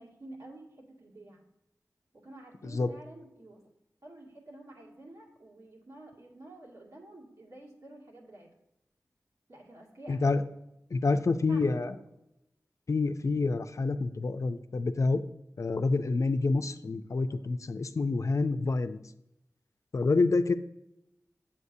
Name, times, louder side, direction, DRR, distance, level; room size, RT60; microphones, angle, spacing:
voice 1, 0.0-1.4 2.1-3.6 4.0-8.5 9.5-10.4 11.1-11.2 11.5-12.0 17.3-17.4, right 1 dB, 60° right, -3 dB, 2.2 m, -49 dB
voice 2, 10.1-10.4 10.9-11.9 12.9-15.2 15.6-19.0 19.9-20.5, left 3 dB, 60° left, 9 dB, 0.4 m, -27 dB
8.2 x 7.3 x 2.7 m, 0.87 s
wide cardioid pair, 60°, 6 cm